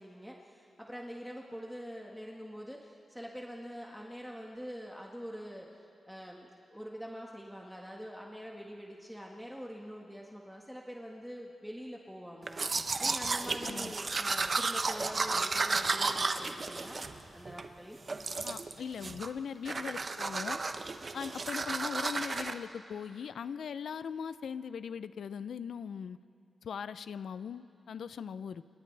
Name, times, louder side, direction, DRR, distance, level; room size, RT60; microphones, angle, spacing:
voice 1, 0.0-12.6 13.0-18.0, equal, ahead, -1 dB, 1.6 m, -45 dB
Domestic sounds home sounds, 12.5-17.7 18.1-18.7 19.0-19.4 19.6-22.5, right 3 dB, 45° right, 0.9 m, -33 dB
voice 2, 13.6-13.9 18.4-20.6 21.1-26.2 26.6-28.6, left 7 dB, 80° left, 14 dB, 0.5 m, -40 dB
28.5 x 27.5 x 3.4 m, 2.7 s
cardioid pair, 80°, 0 cm